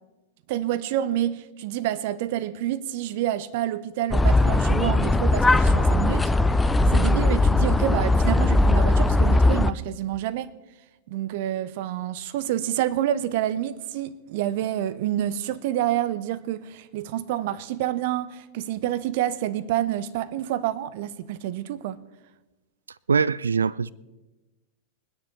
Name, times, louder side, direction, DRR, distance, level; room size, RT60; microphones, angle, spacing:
voice 1, 0.5-10.5 11.1-22.0, right 12 dB, 50° right, 0.7 m, -28 dB
sound 1, 4.1-9.7, left 2 dB, 10° left, 0.4 m, -19 dB
voice 2, 23.1-23.9, right 5 dB, 75° right, 0.3 m, -22 dB
23.5 x 9.9 x 3.2 m
figure-of-eight pair, 90°, 0 cm